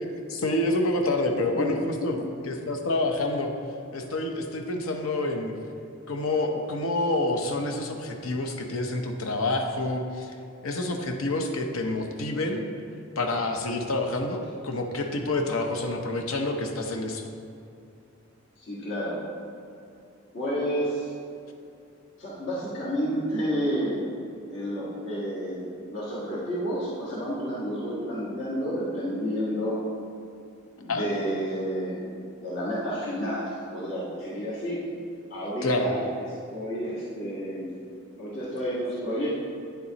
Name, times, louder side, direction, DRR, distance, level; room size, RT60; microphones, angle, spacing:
voice 1, 0.3-2.2 2.4-3.5 3.9-5.6 6.1-10.3 10.6-12.6 13.2-17.2 30.9-31.1 35.6-35.9, left 2 dB, 80° left, 4 dB, 0.8 m, -28 dB
voice 2, 1.5-2.2 18.6-19.2 20.3-21.1 22.2-24.1 24.5-29.8 30.8-32.1 32.4-34.8 35.3-36.0 36.5-37.7 38.2-39.3, equal, 55° left, -9 dB, 1.5 m, -30 dB
9.2 x 6.9 x 2.9 m, 2.6 s
head